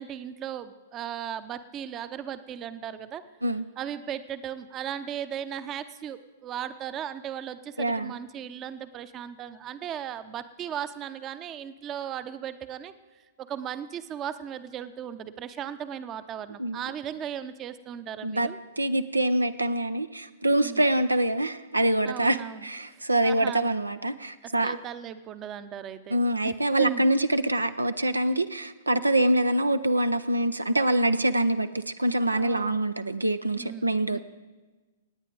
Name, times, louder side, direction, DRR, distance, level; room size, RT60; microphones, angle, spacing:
voice 1, 0.0-3.2 3.8-12.9 13.4-18.6 20.6-20.8 22.0-22.7 23.2-23.6 24.6-26.2 26.4-26.5 26.8-27.0 32.3-32.8 33.5-33.9 34.1-34.2, right 9 dB, 25° right, 12 dB, 0.7 m, -36 dB
voice 2, 7.8-8.1 16.6-16.8 18.2-18.5 18.8-24.8 26.1-34.2, right 1 dB, 90° right, 11 dB, 0.5 m, -25 dB
27.0 x 9.2 x 3.9 m, 1.3 s
figure-of-eight pair, 110°, 0 cm